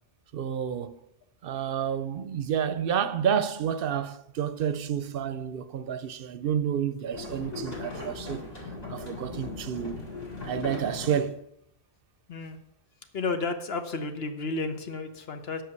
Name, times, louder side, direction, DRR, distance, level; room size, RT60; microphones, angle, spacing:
voice 1, 0.3-1.0 1.4-8.4 8.9-10.0 10.4-11.4, right 8 dB, 65° right, 0.7 m, -30 dB
sound 1, 7.1-11.1, left 2 dB, 40° left, 2.2 m, -38 dB
voice 2, 13.1-15.6, left 3 dB, 70° left, 1.3 m, -32 dB
8.2 x 6.0 x 8.1 m
omnidirectional pair, 1.1 m